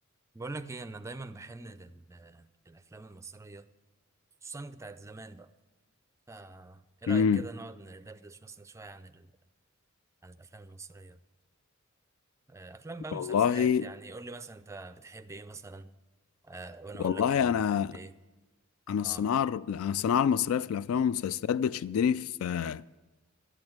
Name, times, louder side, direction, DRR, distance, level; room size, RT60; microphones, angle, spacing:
voice 1, 0.3-3.7 4.4-5.5 6.3-9.3 10.2-11.2 12.5-15.9 16.4-18.2 19.0-19.3, right 3 dB, 15° right, 0.4 m, -44 dB
voice 2, 7.1-7.4 13.1-13.9 17.0-18.0 18.9-22.8, left 7 dB, 70° left, 0.3 m, -27 dB
11.5 x 8.0 x 8.6 m
head